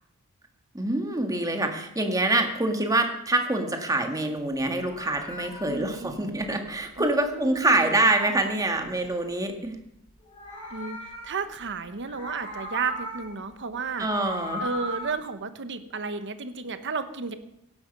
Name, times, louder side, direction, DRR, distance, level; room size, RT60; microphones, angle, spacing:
voice 1, 0.7-9.8 14.0-14.6, right 2 dB, 15° right, 4 dB, 1.9 m, -25 dB
Meow, 4.6-7.3 7.6-9.2 10.1-11.7 12.0-13.4 13.8-15.1, equal, 25° left, 5.9 m, -39 dB
voice 2, 5.6-6.1 7.0-8.0 10.7-11.0 11.2-14.1 14.6-17.3, right 4 dB, 55° right, 10 dB, 1.2 m, -33 dB
17.0 x 11.5 x 5.4 m, 0.79 s
head